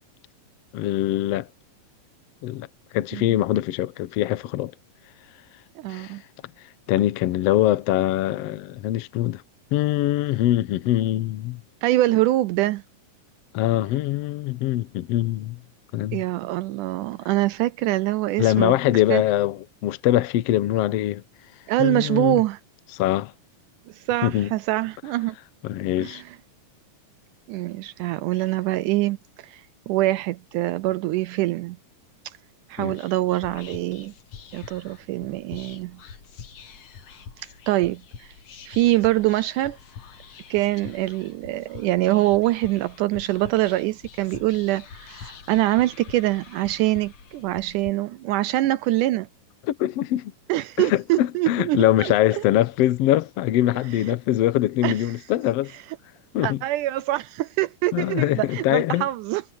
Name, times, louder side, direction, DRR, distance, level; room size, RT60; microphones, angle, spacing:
voice 1, 0.7-1.5 2.4-2.7 2.9-4.7 5.9-6.1 6.9-9.4 9.7-11.6 13.5-15.6 15.9-16.2 18.4-21.2 21.8-22.4 22.9-23.3 24.2-24.5 25.6-26.2 32.8-33.0 49.7-50.3 50.8-55.7 56.3-56.6 57.9-59.1, left 14 dB, 80° left, 1.4 m, -23 dB
voice 2, 5.8-6.2 11.8-12.8 16.1-18.7 19.1-19.2 21.7-22.6 23.9-25.4 26.0-26.2 27.5-29.2 29.4-29.6 29.9-31.8 32.7-34.1 34.5-36.0 37.7-38.3 38.7-39.8 40.5-49.3 50.5-52.1 54.8-55.0 56.4-59.4, right 16 dB, 80° right, 1.9 m, -24 dB
Whispering, 33.3-47.9, left 7 dB, 50° left, 2.4 m, -45 dB
omnidirectional pair, 4.0 m